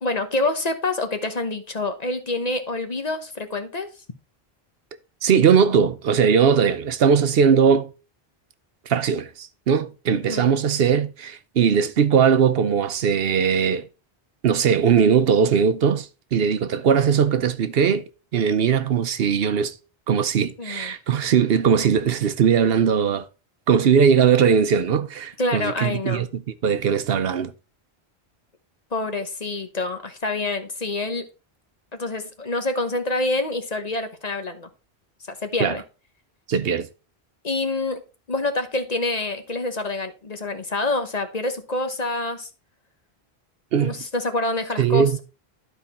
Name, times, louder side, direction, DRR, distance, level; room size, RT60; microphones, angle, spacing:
voice 1, 0.0-3.9 10.1-10.5 20.6-21.0 25.4-26.2 28.9-31.3 32.0-34.7 35.3-35.8 37.4-38.0 38.3-42.5 43.8-45.2, left 2 dB, 40° left, 1.1 m, -27 dB
voice 2, 5.2-7.9 8.9-13.9 14.4-18.0 18.3-19.7 20.1-23.3 23.7-27.5 35.6-35.8 36.5-36.9 43.7-44.0 44.8-45.2, right 7 dB, 70° right, 0.9 m, -19 dB
12.0 x 4.6 x 4.2 m
omnidirectional pair, 1.1 m